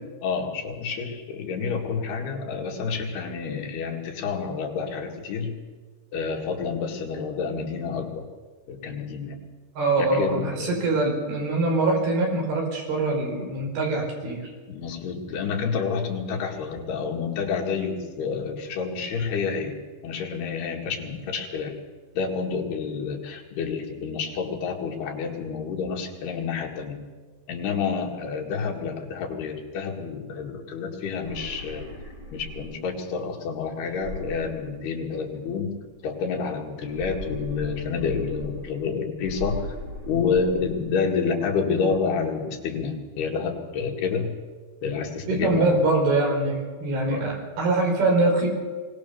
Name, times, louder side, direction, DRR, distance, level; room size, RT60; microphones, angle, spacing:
voice 1, 0.2-5.5 6.1-8.3 8.7-9.4 10.0-10.8 14.7-21.8 22.2-27.0 27.5-31.9 32.3-35.7 36.0-39.8 40.1-44.3 44.8-45.8 47.1-47.2, left 5 dB, 75° left, 1 dB, 4.2 m, -29 dB
voice 2, 9.8-14.5 45.3-48.5, right 2 dB, 70° right, 0 dB, 6.7 m, -23 dB
sound 1, 31.1-33.0 33.9-35.4 36.7-38.9 39.2-40.9, left 1 dB, 20° right, 6.6 m, -38 dB
23.0 x 18.5 x 7.0 m, 1.5 s
omnidirectional pair, 4.7 m